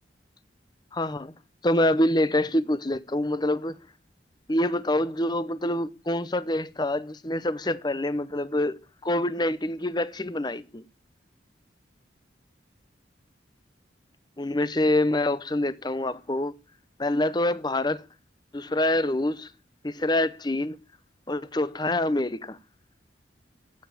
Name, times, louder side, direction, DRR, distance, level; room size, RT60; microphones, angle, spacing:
voice 1, 0.9-1.3 1.6-3.8 4.5-10.8 14.4-16.5 17.0-18.0 18.5-19.5 19.8-20.8 21.3-22.6, left 1 dB, 25° left, 0.7 m, -26 dB
15.5 x 6.9 x 8.7 m
head